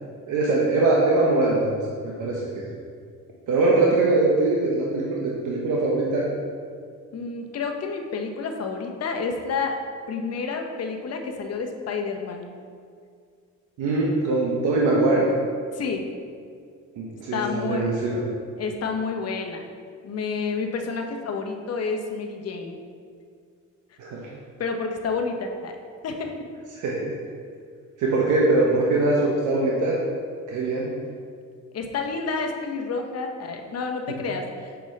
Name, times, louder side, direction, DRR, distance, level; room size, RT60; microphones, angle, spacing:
voice 1, 0.3-2.7 3.5-6.2 13.8-15.3 17.0-18.2 24.0-24.3 26.7-27.1 28.0-30.0 30.5-30.9, right 2 dB, 80° right, -3 dB, 0.9 m, -22 dB
voice 2, 7.1-9.8 10.1-12.5 15.7-16.0 17.1-17.9 18.6-19.6 20.0-22.8 24.6-25.8 26.0-26.3 31.7-34.7, left 4 dB, 55° left, 3 dB, 0.8 m, -29 dB
6.8 x 5.3 x 3.2 m, 2.1 s
cardioid pair, 90°, 30 cm